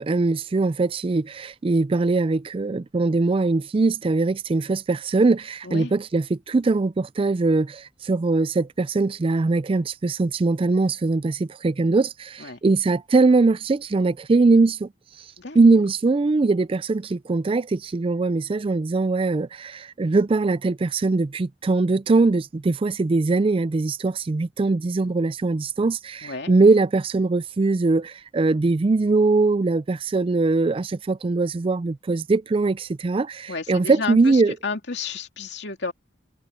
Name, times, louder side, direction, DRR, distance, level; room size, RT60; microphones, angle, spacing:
voice 1, 0.0-14.9 15.5-34.5, right 3 dB, 30° right, 0.4 m, -21 dB
voice 2, 26.2-26.5 33.5-35.9, left 4 dB, 65° left, 2.7 m, -32 dB
head